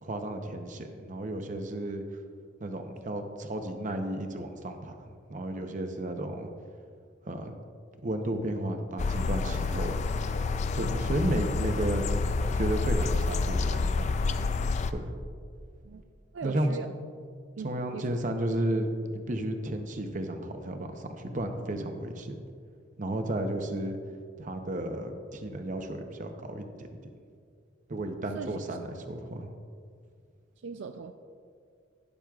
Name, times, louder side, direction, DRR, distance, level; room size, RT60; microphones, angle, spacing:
voice 1, 0.0-2.0 2.6-6.5 7.2-7.6 8.0-10.0 10.7-12.2 12.5-13.9 14.9-15.1 16.4-16.7 17.6-22.4 23.0-24.0 24.4-26.9 27.9-29.5, right 1 dB, 40° right, 6 dB, 0.7 m, -33 dB
sound 1, 9.0-14.9, left 3 dB, 35° left, 0.3 m, -28 dB
voice 2, 16.3-16.9 17.6-18.1 28.3-28.8 30.6-31.1, right 5 dB, 75° right, 8 dB, 0.4 m, -39 dB
12.0 x 10.5 x 2.4 m, 2.2 s
head